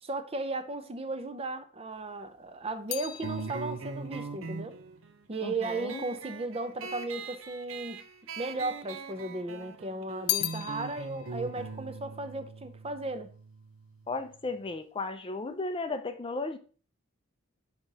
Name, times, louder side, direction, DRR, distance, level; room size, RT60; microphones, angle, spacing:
voice 1, 0.0-4.8 5.3-8.0 8.4-13.3, right 2 dB, 30° right, 0.6 m, -35 dB
sound 1, 1.9-6.4 7.1-7.9 8.2-9.4 9.7-13.2 13.5-14.0, left 17 dB, 90° left, 0.4 m, -39 dB
sound 2, 3.2-14.3, right 4 dB, 70° right, 0.7 m, -41 dB
voice 2, 5.4-6.0 14.1-16.6, left 3 dB, 25° left, 0.5 m, -35 dB
5.7 x 4.8 x 4.0 m
head